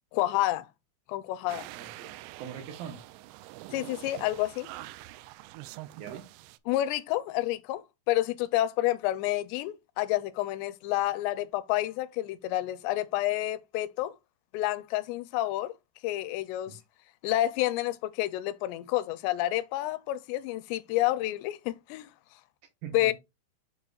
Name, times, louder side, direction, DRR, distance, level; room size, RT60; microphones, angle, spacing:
voice 1, 0.1-0.7 1.1-1.7 3.7-4.7 6.7-14.1 14.5-15.7 16.0-16.8 17.2-22.1 22.9-23.1, left 15 dB, 85° left, 2.7 m, -29 dB
sound 1, 1.5-6.6, right 17 dB, 85° right, 2.6 m, -45 dB
voice 2, 1.8-2.1 2.4-3.0 5.9-6.2 16.7-16.8 22.8-23.1, right 8 dB, 70° right, 2.5 m, -41 dB
6.9 x 6.8 x 2.4 m
omnidirectional pair, 5.0 m